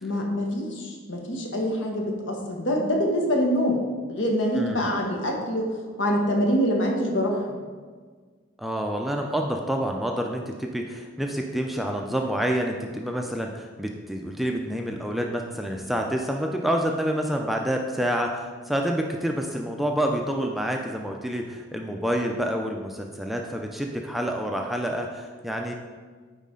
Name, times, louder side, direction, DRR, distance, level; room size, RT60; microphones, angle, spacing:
voice 1, 0.0-3.8 4.1-5.7 6.0-7.5, equal, 75° left, 1 dB, 1.2 m, -25 dB
voice 2, 4.5-4.9 8.6-25.7, equal, ahead, 2 dB, 0.4 m, -28 dB
9.4 x 4.1 x 3.7 m, 1.5 s
head